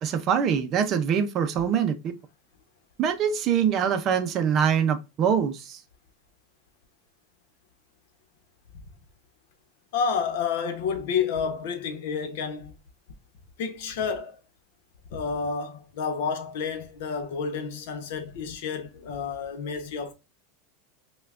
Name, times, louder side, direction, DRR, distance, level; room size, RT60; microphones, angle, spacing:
voice 1, 0.0-2.1 3.0-5.8, right 7 dB, 30° right, 0.5 m, -24 dB
voice 2, 9.9-12.7 13.6-14.4 15.1-20.1, left 6 dB, 70° left, 0.9 m, -30 dB
5.4 x 2.3 x 2.4 m
supercardioid pair, 155°, 0 cm